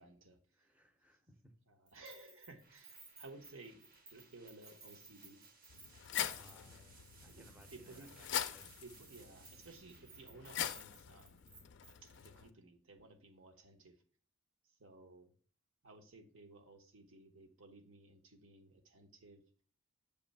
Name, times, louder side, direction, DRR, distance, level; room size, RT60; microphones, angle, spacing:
voice 1, 0.0-0.7 1.7-5.4 6.2-6.8 7.3-8.1 8.8-11.5 12.0-13.9 14.6-15.3 15.8-19.4, right 2 dB, 60° right, 5 dB, 0.9 m, -57 dB
voice 2, 0.5-1.5 6.3-8.7, equal, 5° right, 6 dB, 0.6 m, -64 dB
Keys jangling, 1.9-6.8 7.0-7.3 7.6-12.2, right 3 dB, 80° right, 2.0 m, -59 dB
sound 1, 2.6-12.4, right 4 dB, 40° right, 0.8 m, -65 dB
sound 2, 5.7-12.5, left 10 dB, 55° left, 0.4 m, -43 dB
6.7 x 3.1 x 5.3 m, 0.44 s
head